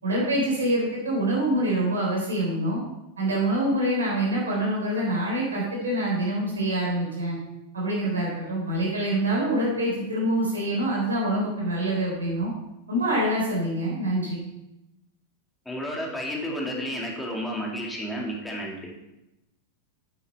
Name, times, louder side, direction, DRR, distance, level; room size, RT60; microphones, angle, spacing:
voice 1, 0.0-2.8 3.2-7.4 7.7-12.5 12.9-14.4, right 1 dB, 70° right, -4 dB, 3.5 m, -25 dB
voice 2, 15.7-18.9, equal, 5° left, -2 dB, 2.2 m, -31 dB
8.8 x 8.0 x 4.2 m, 0.92 s
figure-of-eight pair, 90°, 0 cm